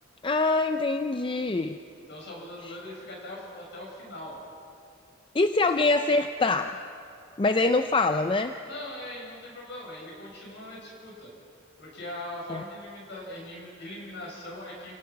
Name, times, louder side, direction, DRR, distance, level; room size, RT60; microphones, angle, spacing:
voice 1, 0.2-1.8 2.7-2.8 5.3-6.8 7.4-8.5 12.5-12.6, left 3 dB, 25° left, 8 dB, 0.5 m, -24 dB
voice 2, 2.1-4.3 8.6-11.3 11.8-15.0, left 1 dB, 55° left, -3 dB, 7.8 m, -41 dB
29.5 x 18.0 x 5.9 m, 2.5 s
head